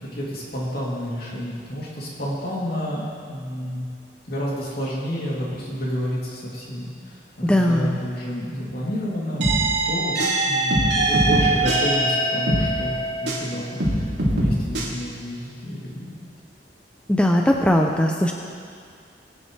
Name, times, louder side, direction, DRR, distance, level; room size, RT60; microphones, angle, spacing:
voice 1, 0.0-3.9 4.3-7.2 7.4-9.4 9.8-10.2 10.5-16.2, equal, 60° left, -5 dB, 3.0 m, -30 dB
voice 2, 7.4-7.9 17.1-18.3, left 1 dB, 5° left, 1 dB, 0.6 m, -19 dB
sound 1, 9.4-13.5 13.8-14.9, right 1 dB, 85° right, 2.9 m, -21 dB
21.5 x 8.8 x 3.3 m, 2.2 s
head